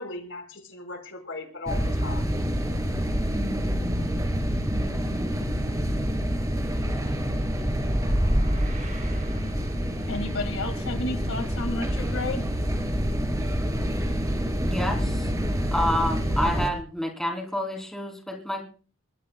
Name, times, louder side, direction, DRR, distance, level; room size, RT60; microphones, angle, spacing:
voice 1, 0.0-2.2, left 3 dB, 65° left, 4 dB, 5.0 m, -37 dB
sound 1, 1.7-16.7, equal, 15° right, 2.8 m, -27 dB
sound 2, 7.4-9.9, equal, 40° right, 7.0 m, -28 dB
voice 2, 10.1-12.4, left 2 dB, 85° left, 7 dB, 2.1 m, -32 dB
voice 3, 14.6-15.3 15.7-18.7, equal, ahead, 1 dB, 3.3 m, -29 dB
24.5 x 20.5 x 2.3 m, 0.41 s
head